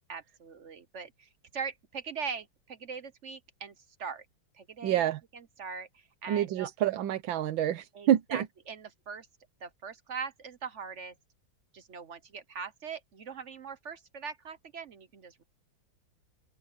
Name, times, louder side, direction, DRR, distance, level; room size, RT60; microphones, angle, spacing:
voice 1, 0.1-4.3 4.5-6.7 7.9-9.3 9.6-11.1 11.7-15.4, right 6 dB, 50° right, 1.0 m, -41 dB
voice 2, 4.8-5.2 6.3-8.4, right 11 dB, 85° right, 1.6 m, -28 dB
open air
omnidirectional pair, 2.1 m